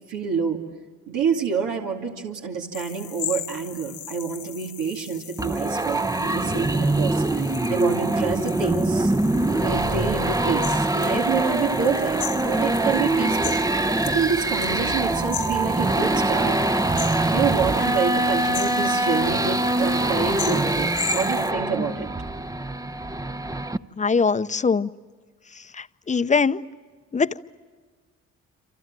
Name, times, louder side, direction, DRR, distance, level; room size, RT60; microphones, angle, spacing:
voice 1, 0.1-0.6 1.1-9.1 9.5-12.2 12.4-13.6 14.1-16.6 17.0-22.1, right 6 dB, 85° right, 0 dB, 2.6 m, -27 dB
sound 1, 2.7-21.5, left 11 dB, 75° left, 1.1 m, -38 dB
sound 2, 5.4-23.8, right 2 dB, 10° right, 0.8 m, -23 dB
voice 2, 24.0-24.9 25.7-26.6 27.1-27.4, left 5 dB, 25° left, 13 dB, 0.8 m, -22 dB
27.5 x 27.5 x 7.6 m, 1.5 s
cardioid pair, 90°, 30 cm